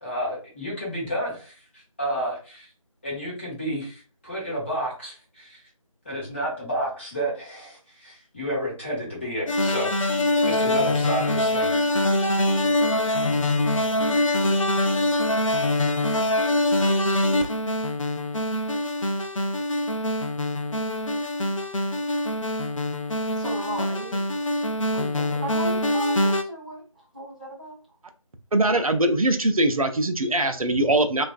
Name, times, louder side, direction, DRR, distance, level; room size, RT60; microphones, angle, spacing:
voice 1, 0.0-1.5 2.0-2.7 3.0-5.6 6.0-11.7, equal, 20° left, 1.0 m, -31 dB
sound 1, 9.5-26.4, left 1 dB, 65° left, 0.5 m, -24 dB
voice 2, 23.3-24.2 24.9-27.8, right 1 dB, 15° right, 0.6 m, -35 dB
voice 3, 28.5-31.2, right 1 dB, 80° right, 0.6 m, -22 dB
3.3 x 2.5 x 2.3 m
figure-of-eight pair, 165°, 18 cm